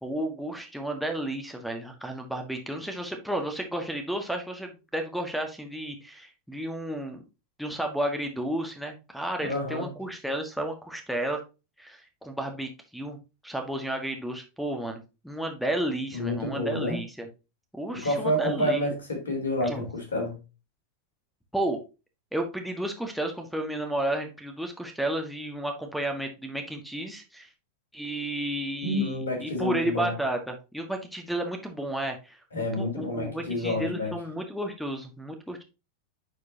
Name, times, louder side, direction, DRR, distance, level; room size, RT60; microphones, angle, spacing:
voice 1, 0.0-7.2 7.6-11.4 11.8-13.2 13.4-17.3 17.7-18.8 19.6-19.9 21.5-21.8 22.3-27.5 27.9-35.6, right 1 dB, ahead, 1.5 m, -32 dB
voice 2, 9.4-9.9 16.1-17.0 17.9-20.4 28.8-30.1 32.5-34.1, left 1 dB, 65° left, 3.2 m, -29 dB
9.7 x 4.6 x 2.8 m
figure-of-eight pair, 90°, 0 cm